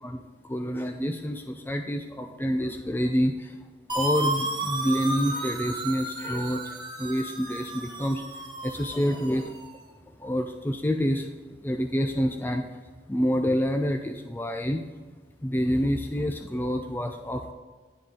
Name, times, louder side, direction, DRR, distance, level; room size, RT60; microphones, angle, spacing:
voice 1, 0.0-3.5 3.9-8.2 8.6-9.5 10.2-11.3 11.6-12.7 13.1-14.8 15.4-17.5, equal, 10° left, 5 dB, 0.3 m, -27 dB
sound 1, 3.9-9.7, right 1 dB, 25° right, 0.9 m, -33 dB
10.5 x 4.1 x 4.8 m, 1.4 s
head